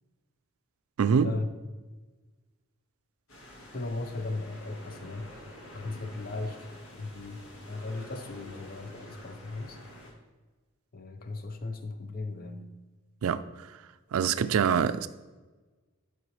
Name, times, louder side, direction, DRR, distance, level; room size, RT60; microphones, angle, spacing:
voice 1, 1.0-1.3 13.2-13.7 14.1-15.1, right 7 dB, 75° right, 0.3 m, -25 dB
sound 1, 3.3-10.1, left 1 dB, 75° left, 1.5 m, -48 dB
voice 2, 3.7-6.7 7.0-9.8 10.9-12.7, left 3 dB, 40° left, 0.6 m, -37 dB
10.5 x 4.6 x 3.1 m
head